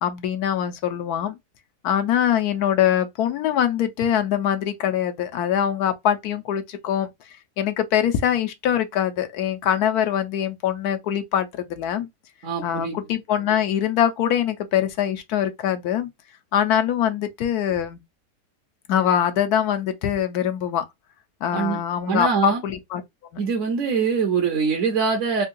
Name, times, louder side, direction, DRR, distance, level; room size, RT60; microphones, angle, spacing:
voice 1, 0.0-1.4 1.8-7.1 7.6-12.1 12.6-16.1 16.5-18.0 18.9-20.8 21.4-23.0, left 9 dB, 75° left, 1.1 m, -23 dB
voice 2, 12.4-13.0 21.5-21.8 22.1-22.6 23.4-25.4, right 5 dB, 60° right, 1.0 m, -23 dB
3.7 x 2.2 x 2.5 m
omnidirectional pair, 1.7 m